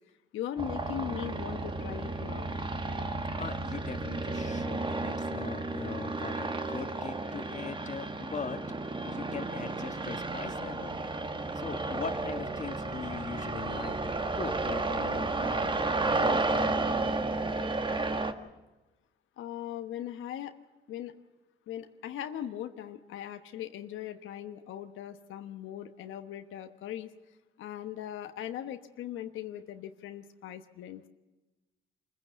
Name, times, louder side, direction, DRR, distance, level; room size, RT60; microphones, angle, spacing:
voice 1, 0.3-2.5 19.4-20.5 20.9-21.1 21.7-27.1 27.6-31.0, left 10 dB, 85° left, 7 dB, 1.2 m, -39 dB
sound 1, 0.6-18.3, right 3 dB, 25° right, 1.5 m, -32 dB
voice 2, 3.4-8.6 9.0-10.9 11.5-15.7 16.0-16.8, left 5 dB, 35° left, 7 dB, 1.6 m, -40 dB
25.0 x 15.5 x 8.2 m, 1.1 s
cardioid pair, 90°, 20 cm